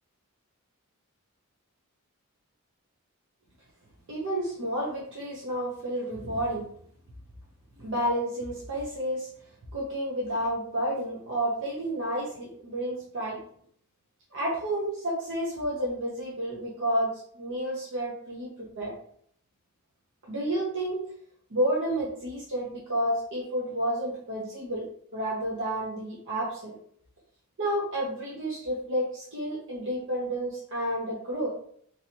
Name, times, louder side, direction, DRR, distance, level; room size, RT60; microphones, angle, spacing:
voice 1, 4.1-6.7 7.8-9.3 9.7-13.4 14.3-18.9 20.2-21.0 21.5-24.9 25.1-26.7 27.6-31.5, right 1 dB, 60° right, -5 dB, 0.8 m, -30 dB
3.1 x 2.8 x 2.8 m, 0.62 s
head